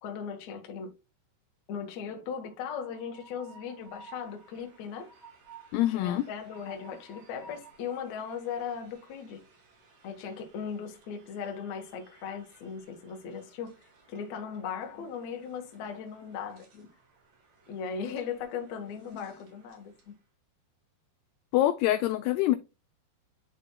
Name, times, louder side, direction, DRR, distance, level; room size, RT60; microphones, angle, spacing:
voice 1, 0.0-0.9 1.7-5.1 5.9-9.4 10.0-13.7 14.1-16.9 17.7-20.1, left 7 dB, 65° left, 1.7 m, -38 dB
Train, 2.4-20.2, right 3 dB, 55° right, 3.5 m, -57 dB
voice 2, 5.7-6.3 21.5-22.6, left 14 dB, 85° left, 2.3 m, -25 dB
11.0 x 4.2 x 2.2 m
omnidirectional pair, 5.0 m